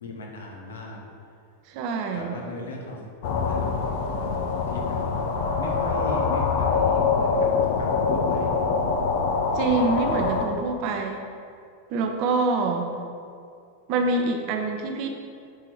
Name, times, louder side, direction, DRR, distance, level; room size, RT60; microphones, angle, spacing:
voice 1, 0.0-1.0 2.1-3.0 3.4-3.7 4.2-5.0 5.6-7.5 7.8-8.6, left 2 dB, 65° left, -1 dB, 1.2 m, -37 dB
voice 2, 1.7-2.4 9.5-11.2 11.9-12.9 13.9-15.1, right 3 dB, 45° right, 3 dB, 0.8 m, -25 dB
sound 1, 3.2-10.5, left 4 dB, 50° left, 0.7 m, -24 dB
7.1 x 4.3 x 4.8 m, 2.3 s
figure-of-eight pair, 90°, 0 cm